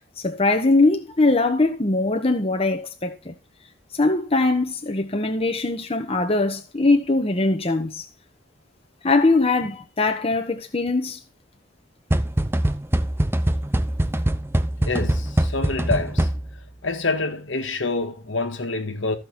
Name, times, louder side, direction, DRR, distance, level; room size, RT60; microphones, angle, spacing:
voice 1, 0.2-3.3 4.0-8.0 9.0-11.2, left 2 dB, 30° left, 1.2 m, -21 dB
sound 1, 12.1-16.7, right 1 dB, 10° right, 0.6 m, -23 dB
voice 2, 14.8-16.3 16.8-19.2, left 3 dB, 80° left, 1.7 m, -26 dB
14.0 x 6.3 x 4.3 m
head